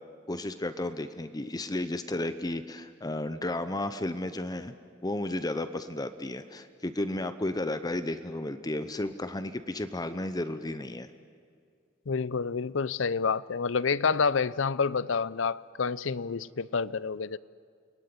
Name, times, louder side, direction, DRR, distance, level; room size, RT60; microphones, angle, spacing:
voice 1, 0.3-4.7 5.0-11.1, left 1 dB, 20° left, 0.8 m, -33 dB
voice 2, 12.1-17.4, left 5 dB, 80° left, 0.6 m, -28 dB
29.5 x 21.0 x 9.7 m
head